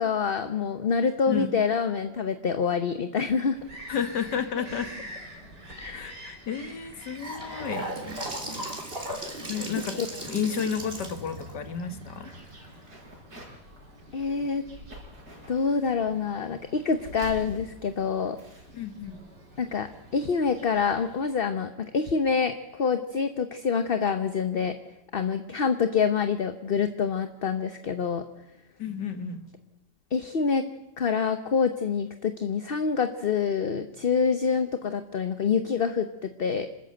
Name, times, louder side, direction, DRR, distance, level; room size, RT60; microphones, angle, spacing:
voice 1, 0.0-3.6 5.8-6.1 10.0-10.1 14.1-14.6 15.5-18.4 19.6-24.8 25.1-28.2 30.1-30.7 31.0-36.7, left 6 dB, 40° left, 9 dB, 0.9 m, -26 dB
Bird vocalization bird call bird song, 3.5-21.2, equal, 80° right, 5.2 m, -48 dB
voice 2, 3.9-4.9 5.9-7.9 9.5-10.0 10.3-12.3 18.7-19.2 28.8-29.4, left 7 dB, 75° left, 9 dB, 2.3 m, -31 dB
Gurgling / Sink (filling or washing) / Bathtub (filling or washing), 6.8-12.9, right 1 dB, 35° right, 3.4 m, -37 dB
sound 1, 12.9-13.6 13.9-14.5 14.9-15.8 16.6-18.9, right 1 dB, 65° right, 6.8 m, -45 dB
26.5 x 13.5 x 7.9 m, 1.0 s
omnidirectional pair, 1.8 m